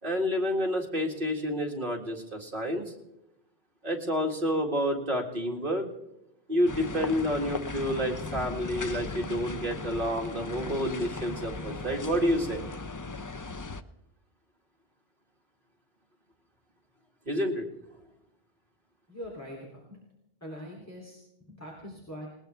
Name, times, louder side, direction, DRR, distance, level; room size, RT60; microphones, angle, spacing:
voice 1, 0.0-2.9 3.8-5.9 6.5-12.6 17.3-17.7, equal, 55° right, 1 dB, 2.4 m, -29 dB
sound 1, 6.7-13.8, left 3 dB, 30° left, 0.4 m, -37 dB
voice 2, 19.1-20.0 20.4-22.3, equal, 15° left, -3 dB, 3.1 m, -43 dB
20.5 x 19.5 x 3.4 m, 0.87 s
omnidirectional pair, 1.1 m